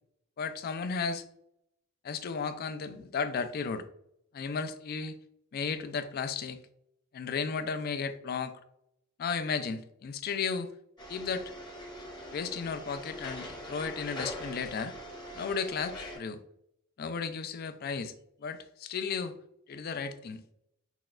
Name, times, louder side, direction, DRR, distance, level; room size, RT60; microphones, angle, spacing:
voice 1, 0.4-1.2 2.0-3.8 4.3-5.2 5.5-6.6 7.1-8.5 9.2-10.7 11.1-11.4 12.3-15.0 15.3-16.4 17.0-18.1 18.4-19.4 19.7-20.4, left 5 dB, 50° left, 10 dB, 0.3 m, -34 dB
sound 1, 11.0-16.2, equal, 20° left, 0.8 m, -42 dB
5.9 x 2.2 x 2.4 m, 0.75 s
head